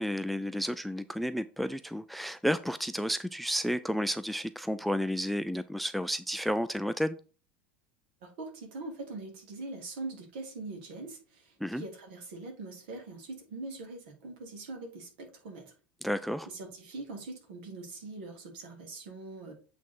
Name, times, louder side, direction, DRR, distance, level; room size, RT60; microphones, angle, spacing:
voice 1, 0.0-7.2 11.6-11.8 16.0-16.5, equal, ahead, 14 dB, 0.3 m, -31 dB
voice 2, 8.2-15.7 16.5-19.5, right 3 dB, 60° right, 3 dB, 2.2 m, -42 dB
8.2 x 3.5 x 4.2 m, 0.36 s
figure-of-eight pair, 75°, 6 cm